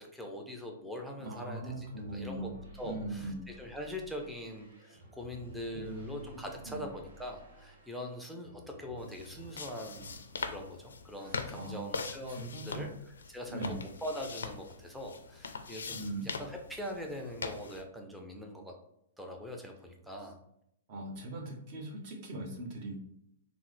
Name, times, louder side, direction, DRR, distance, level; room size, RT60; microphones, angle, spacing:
voice 1, 0.0-18.7 19.2-20.4, left 1 dB, 5° right, 1 dB, 0.5 m, -43 dB
voice 2, 1.2-2.5 2.8-3.4 5.7-6.2 6.7-6.8 11.2-11.9 12.3-12.9 13.5-13.7 15.9-16.3 20.9-23.0, right 2 dB, 45° right, 0 dB, 1.0 m, -40 dB
sound 1, 1.6-10.7 11.0-11.9, right 1 dB, 70° right, 1.1 m, -54 dB
sound 2, 9.0-17.8, left 5 dB, 75° left, 0.4 m, -42 dB
3.7 x 2.0 x 3.1 m, 0.77 s
hypercardioid pair, 115°, 0 cm